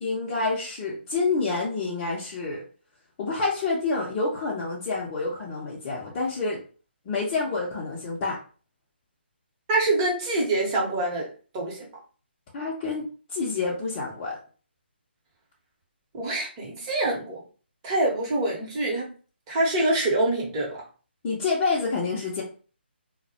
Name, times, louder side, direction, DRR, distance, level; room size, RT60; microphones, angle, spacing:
voice 1, 0.0-2.6 3.2-6.6 7.1-8.4 12.5-14.4 21.2-22.4, left 3 dB, 25° left, -5 dB, 0.5 m, -28 dB
voice 2, 9.7-11.3 11.5-11.8 16.1-17.4 17.8-19.1 19.5-20.8, right 2 dB, 25° right, -3 dB, 0.8 m, -25 dB
2.2 x 2.0 x 2.7 m, 0.38 s
figure-of-eight pair, 155°, 6 cm